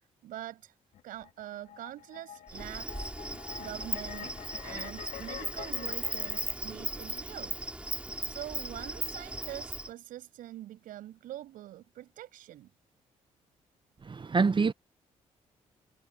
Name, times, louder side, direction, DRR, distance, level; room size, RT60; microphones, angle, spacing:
voice 1, 0.2-0.8 1.0-3.1 3.6-4.4 4.6-7.6 8.2-12.7, right 13 dB, 80° right, 7.4 m, -44 dB
sound 1, 0.9-6.5, left 11 dB, 75° left, 1.9 m, -46 dB
Insect, 2.5-9.9, right 1 dB, 10° right, 3.9 m, -37 dB
voice 2, 14.0-14.7, right 4 dB, 35° right, 1.1 m, -26 dB
supercardioid pair, 55°, 14 cm